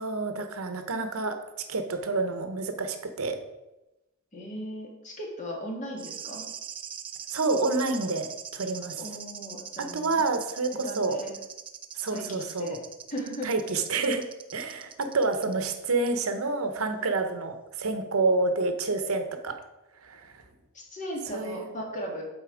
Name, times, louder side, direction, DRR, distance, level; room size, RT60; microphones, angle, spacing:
voice 1, 0.0-1.4 1.7-3.4 7.3-9.0 9.9-11.2 12.0-12.8 13.4-14.2 14.5-19.5 20.0-20.4 21.3-21.7, right 3 dB, 80° right, 7 dB, 0.8 m, -28 dB
voice 2, 4.3-6.4 9.0-10.2 10.8-11.3 12.1-12.8 13.1-13.6 20.7-22.3, equal, 35° left, 0 dB, 1.7 m, -37 dB
sound 1, 6.0-15.8 16.1-16.2, right 8 dB, 25° right, 0.3 m, -42 dB
7.7 x 4.4 x 4.9 m, 0.98 s
head